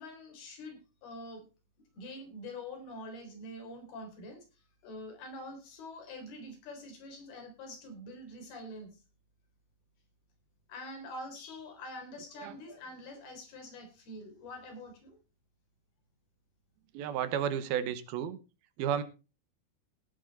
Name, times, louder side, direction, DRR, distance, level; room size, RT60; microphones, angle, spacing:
voice 1, 0.0-1.4 1.9-4.4 4.8-9.0 10.7-15.2, left 1 dB, 90° left, 5 dB, 5.7 m, -45 dB
voice 2, 16.9-18.4 18.8-19.0, right 9 dB, 85° right, 12 dB, 2.9 m, -32 dB
17.5 x 8.6 x 4.1 m, 0.31 s
omnidirectional pair, 4.3 m